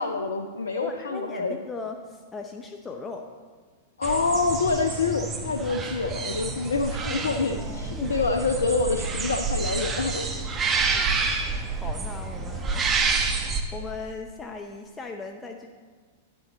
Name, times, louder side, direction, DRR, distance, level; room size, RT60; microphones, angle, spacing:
voice 1, 0.0-1.6 4.0-10.4, left 4 dB, 75° left, 4 dB, 0.5 m, -27 dB
voice 2, 0.8-3.3 6.9-8.2 8.5-8.6 10.9-11.1 11.8-13.1 13.7-15.7, left 3 dB, 15° left, 3 dB, 0.7 m, -38 dB
sound 1, 4.0-13.6, right 4 dB, 25° right, 0.9 m, -28 dB
10.5 x 8.4 x 3.8 m, 1.5 s
figure-of-eight pair, 100°, 0 cm